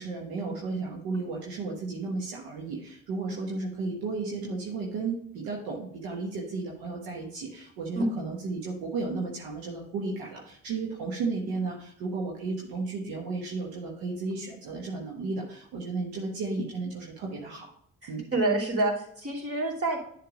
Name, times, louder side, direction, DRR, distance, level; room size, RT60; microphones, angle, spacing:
voice 1, 0.0-17.7 18.1-18.3, right 3 dB, 75° right, -1 dB, 1.2 m, -34 dB
voice 2, 18.0-20.0, right 2 dB, 40° right, -3 dB, 3.0 m, -28 dB
10.5 x 3.5 x 4.9 m, 0.67 s
hypercardioid pair, 40°, 37 cm